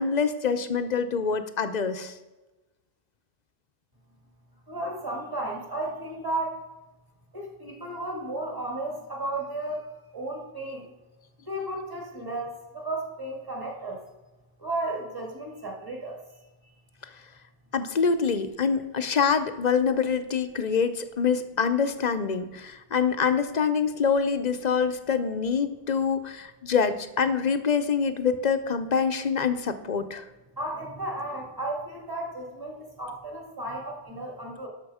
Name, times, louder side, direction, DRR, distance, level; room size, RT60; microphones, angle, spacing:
voice 1, 0.0-2.1 17.7-30.2, left 6 dB, 50° left, 10 dB, 0.7 m, -25 dB
voice 2, 4.7-6.6 7.3-10.9 11.4-14.1 14.6-16.2 30.6-34.7, right 2 dB, 20° right, 0 dB, 2.0 m, -34 dB
12.5 x 6.0 x 4.9 m, 1.1 s
omnidirectional pair, 1.0 m